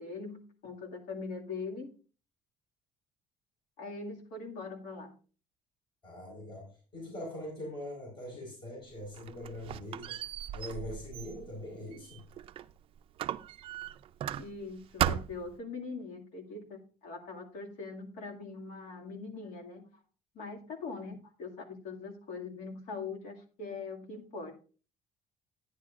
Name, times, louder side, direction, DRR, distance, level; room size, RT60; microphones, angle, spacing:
voice 1, 0.0-1.9 3.8-5.1 14.4-20.0 20.3-24.5, left 4 dB, 75° left, 1 dB, 2.1 m, -42 dB
voice 2, 6.0-10.2 10.5-12.2, left 1 dB, 40° left, -1 dB, 4.4 m, -42 dB
Squeak, 8.9-12.7 13.2-14.7 15.0-15.6, right 11 dB, 45° right, 0.4 m, -36 dB
11.5 x 9.9 x 2.5 m, 0.37 s
cardioid pair, 160°, 13 cm